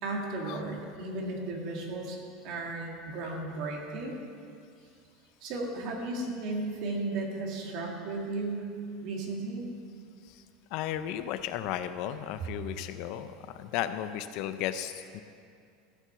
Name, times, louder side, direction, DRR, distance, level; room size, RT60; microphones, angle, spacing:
voice 1, 0.0-4.2 5.4-8.7 9.0-9.7, right 2 dB, 40° right, 0 dB, 1.9 m, -35 dB
voice 2, 10.7-15.2, left 11 dB, 45° left, 11 dB, 0.4 m, -34 dB
14.5 x 6.1 x 6.8 m, 2.4 s
supercardioid pair, 170°, 0 cm